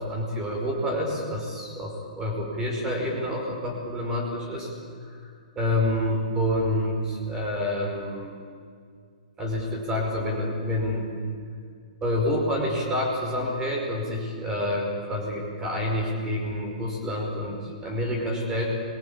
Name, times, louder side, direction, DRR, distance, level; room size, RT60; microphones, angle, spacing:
voice 1, 0.0-4.7 5.6-8.3 9.4-11.1 12.0-18.6, left 1 dB, 10° right, 0 dB, 5.2 m, -28 dB
25.5 x 23.0 x 8.8 m, 2.2 s
hypercardioid pair, 170°, 4 cm